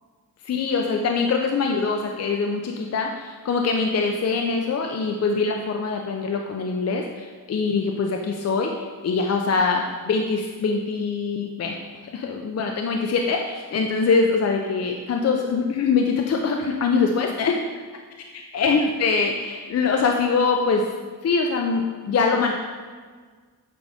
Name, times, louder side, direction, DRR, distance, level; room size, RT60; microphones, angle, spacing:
voice 1, 0.4-11.8 12.1-17.6 18.5-20.9 21.2-22.5, left 4 dB, 45° left, 2 dB, 0.5 m, -23 dB
8.4 x 3.9 x 4.9 m, 1.5 s
wide cardioid pair, 155°, 35 cm